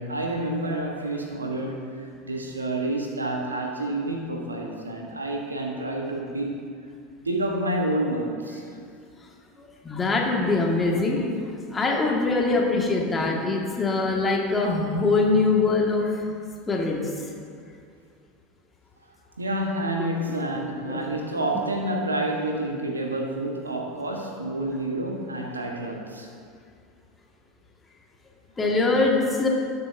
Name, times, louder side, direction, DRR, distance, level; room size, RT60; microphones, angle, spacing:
voice 1, 0.0-6.5 7.2-8.6 19.4-26.3, right 1 dB, 85° right, 1 dB, 1.3 m, -29 dB
voice 2, 9.8-11.3 11.7-16.3 16.7-17.0 20.9-21.0 28.6-29.5, left 3 dB, 20° left, -1 dB, 1.9 m, -23 dB
19.5 x 6.8 x 2.7 m, 2.3 s
figure-of-eight pair, 80°, 0 cm